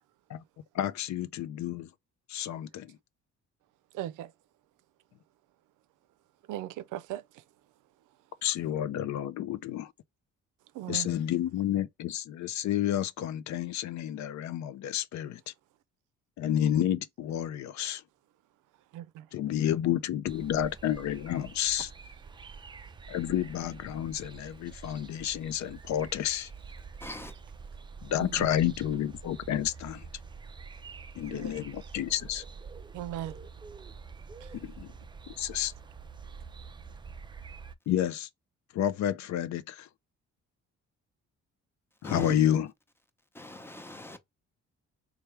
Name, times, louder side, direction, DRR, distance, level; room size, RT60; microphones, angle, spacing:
voice 1, 0.7-1.9 2.3-2.9 8.4-9.9 10.9-15.5 16.4-18.0 19.3-21.9 23.1-26.5 28.0-30.0 31.2-32.4 34.6-34.9 35.3-35.7 37.9-38.3 38.7-39.9 42.0-42.7, left 11 dB, 65° left, 0.5 m, -30 dB
voice 2, 3.9-4.3 6.5-7.2 10.7-11.2 18.9-19.3 28.2-28.5 31.3-31.7 32.9-33.4 34.4-34.5, right 13 dB, 85° right, 0.5 m, -38 dB
sound 1, 20.3-37.7, right 5 dB, 15° right, 0.3 m, -47 dB
voice 3, 27.0-27.3 42.0-42.3 43.3-44.2, left 2 dB, 10° left, 0.7 m, -38 dB
3.3 x 2.3 x 4.3 m
cardioid pair, 90°, 30 cm